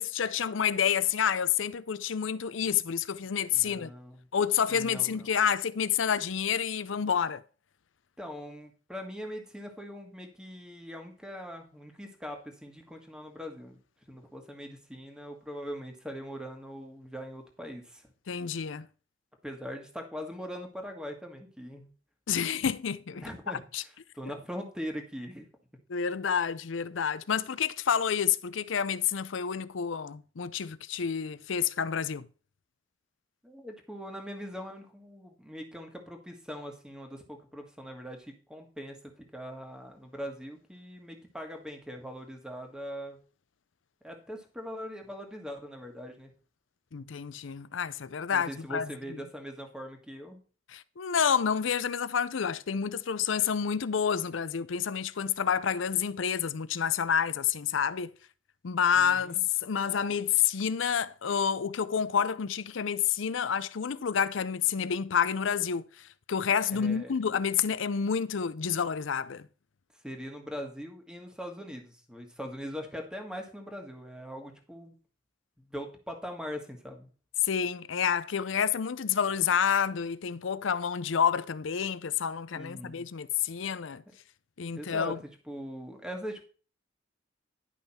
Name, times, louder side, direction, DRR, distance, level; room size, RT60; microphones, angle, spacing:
voice 1, 0.0-3.9 4.3-7.4 18.3-18.9 22.3-23.8 25.9-32.3 46.9-49.2 50.7-58.1 58.6-69.5 77.4-84.0 84.6-85.2, left 7 dB, 85° left, 0.5 m, -29 dB
voice 2, 3.5-4.2 4.7-5.3 8.2-13.8 14.1-18.1 19.4-21.9 23.1-25.5 33.4-43.2 44.0-46.3 48.3-50.4 58.9-59.4 66.7-67.2 70.0-74.9 75.6-77.1 82.5-83.1 84.7-85.1 85.4-86.5, equal, 5° right, 1.6 m, -41 dB
11.0 x 5.6 x 4.3 m
head